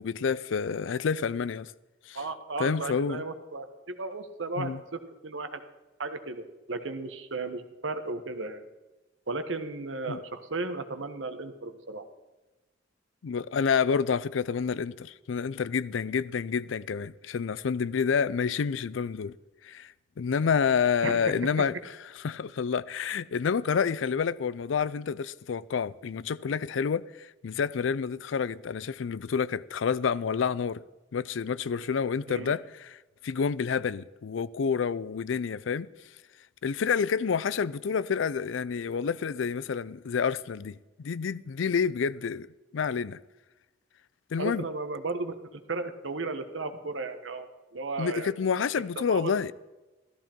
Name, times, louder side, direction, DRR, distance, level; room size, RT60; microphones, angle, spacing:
voice 1, 0.0-1.7 2.1-2.2 2.6-3.2 4.6-4.8 10.1-10.2 13.2-19.4 19.6-21.7 22.2-30.8 31.1-33.0 33.2-35.9 36.6-42.5 42.7-43.2 44.3-44.7 48.0-49.5, left 6 dB, 80° left, 0.4 m, -28 dB
voice 2, 2.1-5.6 6.0-8.6 9.3-12.0 21.0-21.4 32.3-32.6 44.4-48.3 48.7-48.8 49.1-49.3, right 3 dB, 80° right, 1.3 m, -35 dB
14.5 x 13.5 x 4.5 m
head